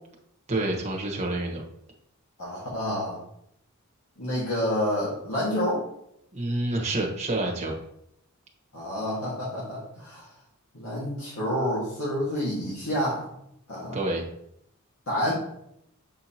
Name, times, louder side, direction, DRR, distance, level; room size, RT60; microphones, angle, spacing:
voice 1, 0.5-1.6 6.3-7.7 13.9-14.2, right 2 dB, 30° right, 0 dB, 1.2 m, -28 dB
voice 2, 2.4-3.2 4.2-5.8 8.7-10.3 10.7-13.3 13.7-14.0 15.1-15.3, equal, 75° left, -7 dB, 1.8 m, -28 dB
7.8 x 4.7 x 2.9 m, 0.76 s
head